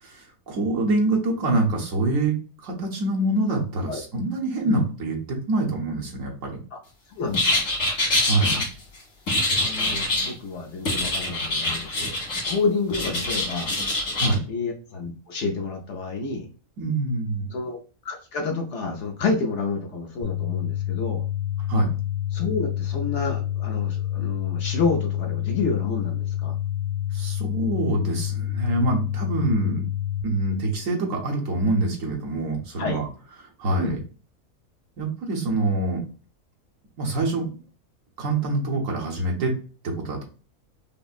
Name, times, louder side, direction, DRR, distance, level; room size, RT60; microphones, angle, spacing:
voice 1, 0.0-2.3 2.6-6.6 8.2-8.6 14.2-14.4 16.8-17.5 21.7-21.9 27.1-29.9 30.2-33.1 33.6-34.0 35.0-36.0 37.0-37.6 38.2-39.5 39.8-40.2, right 2 dB, 65° right, -1 dB, 1.2 m, -25 dB
voice 2, 7.2-7.6 9.6-13.7 14.5-16.5 17.5-17.8 18.0-21.2 22.3-26.6 32.8-33.0 33.8-34.0, left 4 dB, 60° left, 2 dB, 0.8 m, -29 dB
sound 1, 7.3-8.6 9.3-10.3 10.9-12.6 12.9-14.3, left 2 dB, 75° left, 1.9 m, -25 dB
sound 2, 20.2-30.2, left 12 dB, 35° left, 0.6 m, -28 dB
5.2 x 2.0 x 2.4 m, 0.38 s
omnidirectional pair, 1.5 m